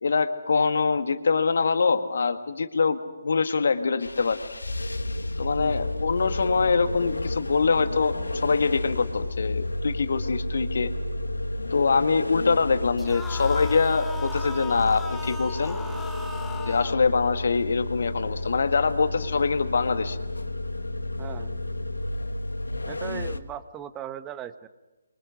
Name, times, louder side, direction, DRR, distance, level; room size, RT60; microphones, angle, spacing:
voice 1, 0.0-3.0 3.2-4.4 5.4-8.1 8.4-10.9 11.7-15.8 16.7-20.2, left 4 dB, 60° left, 8 dB, 1.9 m, -24 dB
sound 1, 4.0-23.4, left 2 dB, 85° left, 1.6 m, -31 dB
voice 2, 5.6-6.0 11.9-12.1 21.2-21.6 22.8-24.7, right 10 dB, 15° right, 12 dB, 1.1 m, -39 dB
sound 2, 13.0-17.0, left 2 dB, 5° left, 1.5 m, -38 dB
28.0 x 24.0 x 6.4 m, 1.1 s
figure-of-eight pair, 145°, 0 cm